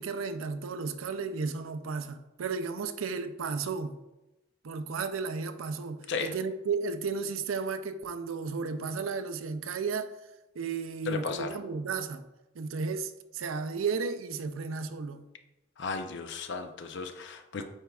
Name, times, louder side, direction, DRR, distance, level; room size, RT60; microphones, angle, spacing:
voice 1, 0.0-4.0 4.6-10.1 10.5-12.2 12.5-15.3, right 5 dB, 85° right, 0.5 m, -33 dB
voice 2, 11.1-11.6 15.8-17.6, left 5 dB, 60° left, 0.6 m, -35 dB
8.8 x 4.6 x 2.3 m
head